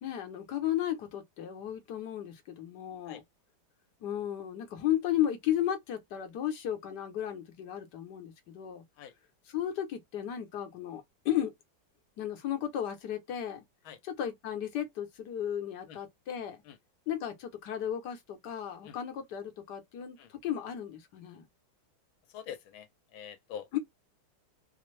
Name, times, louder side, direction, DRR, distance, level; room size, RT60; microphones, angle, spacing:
voice 1, 0.0-3.2 4.0-8.8 9.5-11.5 12.2-13.6 14.0-16.6 17.1-21.5 23.7-23.8, left 11 dB, 60° left, 1.5 m, -34 dB
voice 2, 22.3-23.7, left 8 dB, 80° left, 1.6 m, -45 dB
4.3 x 2.3 x 3.2 m
omnidirectional pair, 2.2 m